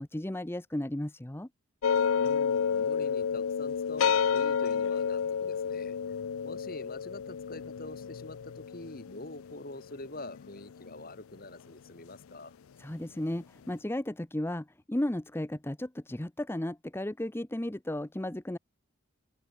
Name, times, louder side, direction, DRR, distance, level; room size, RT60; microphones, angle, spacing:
voice 1, 0.0-1.5 12.8-18.6, left 1 dB, 10° left, 0.6 m, -34 dB
sound 1, 1.8-11.0, left 7 dB, 70° left, 0.4 m, -30 dB
voice 2, 2.2-6.0 6.4-12.5, left 2 dB, 40° left, 5.7 m, -45 dB
open air
head